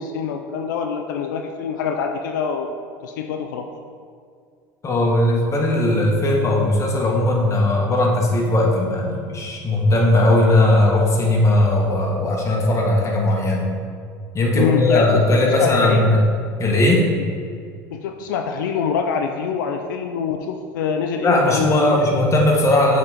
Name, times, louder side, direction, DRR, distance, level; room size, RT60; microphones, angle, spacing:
voice 1, 0.0-2.7 3.0-3.7 14.5-15.2 15.6-16.2 17.9-22.0, left 6 dB, 85° left, 5 dB, 0.5 m, -25 dB
voice 2, 4.8-13.7 14.3-16.2 16.6-17.1 21.2-23.0, left 1 dB, 30° left, -1 dB, 1.7 m, -18 dB
7.3 x 4.1 x 5.1 m, 2.2 s
supercardioid pair, 90°, 10 cm